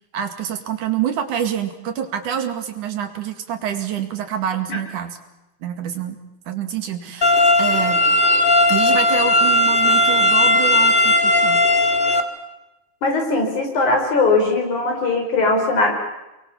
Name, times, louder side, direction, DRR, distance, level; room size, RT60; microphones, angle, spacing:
voice 1, 0.1-5.2 5.6-6.2 6.5-8.0 8.7-11.7, right 9 dB, 80° right, 7 dB, 3.7 m, -26 dB
sound 1, 7.2-12.2, left 1 dB, 20° left, 2.2 m, -16 dB
voice 2, 13.0-15.9, left 3 dB, 75° left, 3 dB, 6.3 m, -19 dB
29.0 x 22.5 x 7.2 m, 0.99 s
omnidirectional pair, 3.5 m